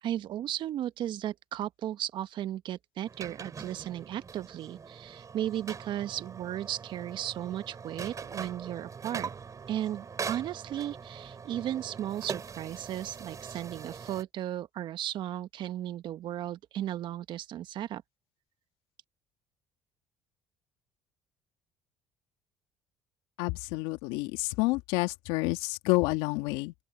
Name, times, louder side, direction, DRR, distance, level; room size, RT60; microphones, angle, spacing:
voice 1, 0.0-9.3 9.7-18.0, right 12 dB, 60° right, 1.3 m, -35 dB
sound 1, 3.1-14.2, right 6 dB, 35° right, 5.7 m, -42 dB
voice 2, 23.4-26.7, left 23 dB, 75° left, 2.2 m, -29 dB
open air
hypercardioid pair, 65°, 9 cm